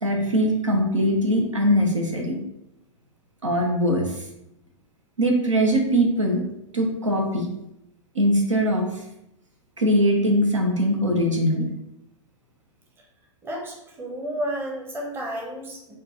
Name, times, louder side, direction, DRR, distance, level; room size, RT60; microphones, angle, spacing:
voice 1, 0.0-2.4 3.4-4.1 5.2-6.4 6.7-7.5 8.1-8.9 9.8-11.7, equal, 80° right, 2 dB, 0.9 m, -21 dB
voice 2, 13.4-16.0, equal, 15° right, 0 dB, 0.8 m, -32 dB
6.2 x 2.5 x 2.9 m, 0.84 s
figure-of-eight pair, 105°, 16 cm